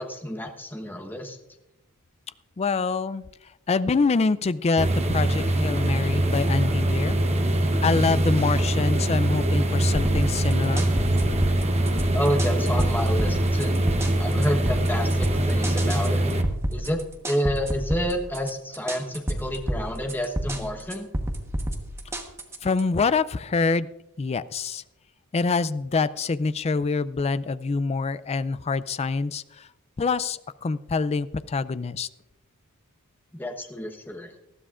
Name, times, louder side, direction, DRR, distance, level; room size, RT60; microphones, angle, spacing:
voice 1, 0.0-1.4 12.1-13.8 14.2-16.2 16.7-21.1 33.4-34.3, equal, 10° left, 4 dB, 1.1 m, -29 dB
voice 2, 2.6-3.3 3.7-7.2 7.8-10.9 22.6-23.9 24.2-24.8 25.3-29.7 30.0-32.1, left 4 dB, 30° left, 16 dB, 0.4 m, -25 dB
sound 1, 4.8-16.4, right 1 dB, 30° right, 0.9 m, -23 dB
sound 2, 10.0-22.8, right 1 dB, 10° right, 1.2 m, -30 dB
19.5 x 13.5 x 2.5 m, 0.91 s
head